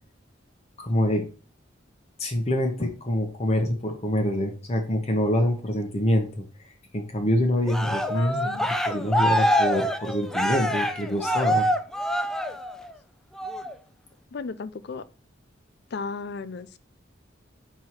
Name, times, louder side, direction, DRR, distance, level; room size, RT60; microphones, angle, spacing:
voice 1, 0.8-1.2 2.2-6.4 6.9-11.7, left 1 dB, 35° left, 1.0 m, -25 dB
Cheering, 7.7-12.9 13.4-13.7, equal, 5° left, 0.5 m, -25 dB
voice 2, 8.1-8.6 14.3-15.0 15.9-16.8, left 4 dB, 60° left, 0.5 m, -34 dB
4.7 x 4.6 x 5.8 m
head